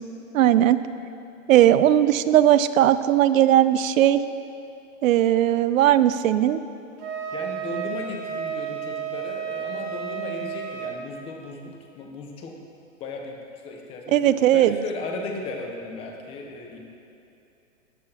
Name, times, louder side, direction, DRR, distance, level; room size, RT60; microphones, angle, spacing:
voice 1, 0.3-0.8 1.5-4.2 5.0-6.6 14.1-14.8, right 12 dB, 80° right, 13 dB, 0.5 m, -18 dB
Wind instrument woodwind instrument, 7.0-11.0, right 8 dB, 30° right, 0.9 m, -32 dB
voice 2, 7.3-12.6 13.0-16.8, left 3 dB, 15° left, 2 dB, 0.6 m, -36 dB
13.5 x 8.8 x 2.8 m, 2.8 s
hypercardioid pair, 150°, 39 cm